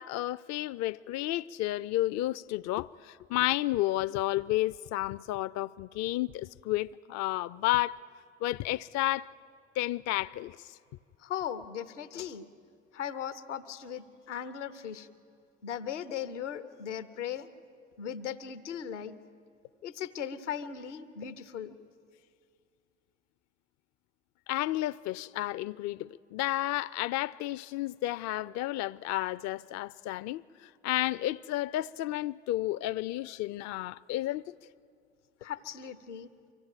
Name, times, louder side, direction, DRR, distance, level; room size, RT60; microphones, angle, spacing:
voice 1, 0.0-8.0 8.4-9.3 9.8-10.8 24.5-34.6, left 16 dB, 50° left, 0.4 m, -32 dB
voice 2, 11.2-12.4 12.9-15.1 15.6-17.5 18.0-19.2 19.8-21.8 35.4-36.3, left 9 dB, 85° left, 0.8 m, -38 dB
24.5 x 15.5 x 9.0 m
figure-of-eight pair, 55°, 35 cm